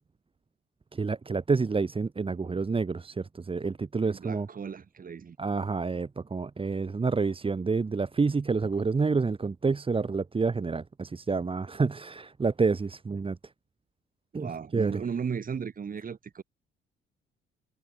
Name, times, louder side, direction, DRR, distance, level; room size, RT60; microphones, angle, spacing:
voice 1, 0.9-4.5 5.4-13.4 14.3-15.0, right 4 dB, 25° right, 1.9 m, -28 dB
voice 2, 4.0-5.4 14.3-16.4, right 6 dB, 45° right, 7.0 m, -36 dB
cardioid pair, 90°, 20 cm